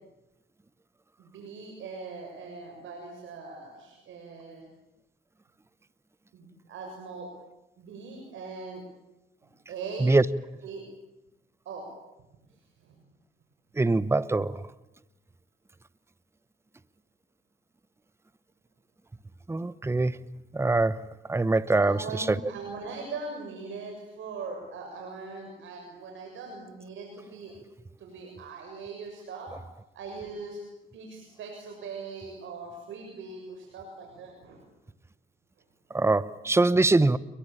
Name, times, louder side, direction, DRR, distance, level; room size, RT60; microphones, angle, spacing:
voice 1, 1.2-4.7 6.3-7.3 7.8-8.8 9.4-10.1 10.6-10.8 11.7-11.9 12.8-13.0 21.8-27.5 28.0-29.5 29.9-30.6 30.9-34.6 35.9-36.0, right 4 dB, 75° right, 6.9 m, -40 dB
voice 2, 13.8-14.6 19.5-20.2 20.5-21.0 21.3-22.2 35.9-37.2, right 2 dB, 15° right, 1.0 m, -23 dB
29.0 x 23.0 x 8.9 m
cardioid pair, 90°, 20 cm